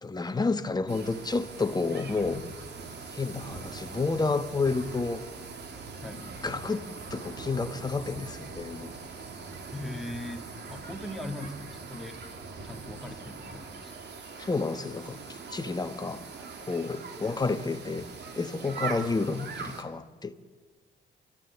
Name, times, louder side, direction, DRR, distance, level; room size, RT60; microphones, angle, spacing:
voice 1, 0.0-2.4 3.1-5.2 6.1-8.9 14.4-16.2 16.7-18.1 18.3-20.3, left 3 dB, 20° left, 1.2 m, -30 dB
sound 1, 0.9-19.8, right 4 dB, 60° right, 2.6 m, -42 dB
voice 2, 6.0-6.4 9.7-12.2 12.6-13.9, left 1 dB, ahead, 1.8 m, -40 dB
30.0 x 13.0 x 7.1 m
cardioid pair, 90°, 20 cm